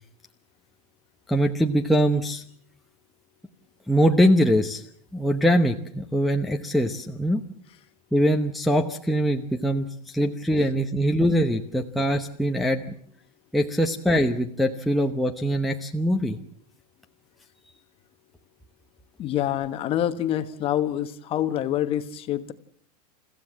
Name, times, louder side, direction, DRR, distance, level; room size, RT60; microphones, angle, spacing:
voice 1, 1.3-2.4 3.9-4.8 5.1-7.4 8.1-12.8 13.5-16.4, equal, ahead, 1 dB, 0.9 m, -22 dB
voice 2, 19.2-22.5, left 11 dB, 25° left, 10 dB, 1.2 m, -26 dB
29.5 x 15.0 x 7.4 m, 0.64 s
supercardioid pair, 155°, 20 cm